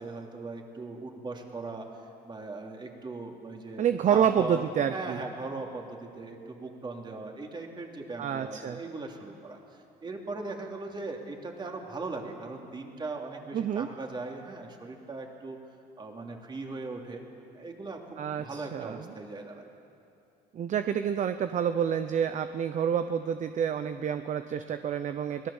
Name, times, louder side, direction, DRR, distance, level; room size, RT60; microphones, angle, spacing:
voice 1, 0.0-1.9 2.2-4.6 4.9-15.6 16.0-17.2 17.5-19.7, right 3 dB, 25° right, 1 dB, 2.9 m, -39 dB
voice 2, 3.8-5.2 8.2-8.8 13.5-13.9 18.2-19.0 20.5-25.5, right 8 dB, 45° right, 9 dB, 0.7 m, -28 dB
24.5 x 18.0 x 7.2 m, 2.5 s
cardioid pair, 110°, 17 cm